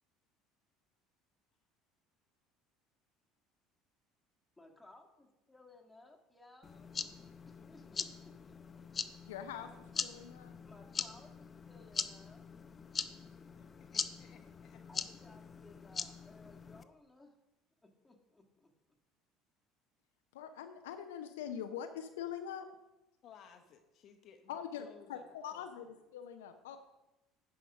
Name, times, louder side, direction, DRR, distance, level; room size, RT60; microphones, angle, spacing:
voice 1, 4.6-6.9 7.5-9.1 10.6-12.4 14.9-17.3 17.8-18.7, left 2 dB, 10° left, 1.8 m, -60 dB
sound 1, 6.6-16.8, left 5 dB, 30° left, 0.5 m, -42 dB
voice 2, 9.3-10.5 20.3-22.7 24.5-26.8, left 9 dB, 75° left, 0.6 m, -43 dB
voice 3, 13.6-14.8 23.2-25.9, left 7 dB, 50° left, 1.0 m, -59 dB
10.0 x 5.0 x 5.9 m
hypercardioid pair, 65°, 0 cm